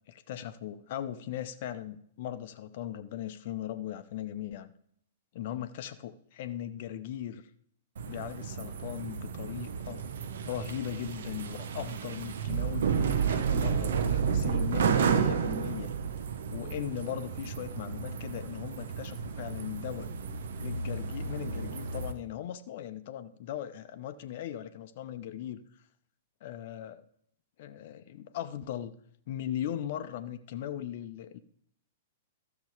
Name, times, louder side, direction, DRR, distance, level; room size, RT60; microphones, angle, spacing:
voice 1, 0.1-4.7 5.3-7.4 8.1-10.0 10.4-15.9 16.5-20.1 20.6-25.6 26.4-27.0 27.6-29.0 29.3-31.4, left 11 dB, 50° left, 9 dB, 0.7 m, -38 dB
sound 1, 8.0-22.1, right 6 dB, 65° right, 0.9 m, -32 dB
13.0 x 6.8 x 4.9 m, 0.67 s
figure-of-eight pair, 105°, 0 cm